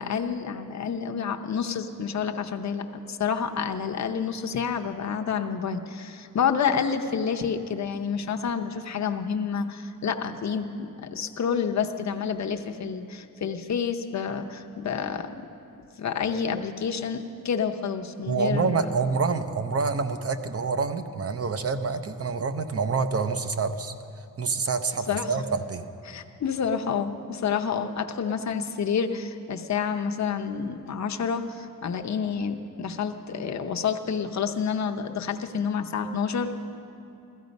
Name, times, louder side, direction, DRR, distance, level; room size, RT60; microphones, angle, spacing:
voice 1, 0.0-15.5 16.0-18.9 25.1-25.4 26.1-36.5, left 6 dB, 55° left, 5 dB, 0.7 m, -29 dB
voice 2, 18.3-23.9 24.4-25.9, right 4 dB, 45° right, 9 dB, 0.7 m, -27 dB
16.5 x 13.5 x 5.3 m, 2.8 s
wide cardioid pair, 150°, 34 cm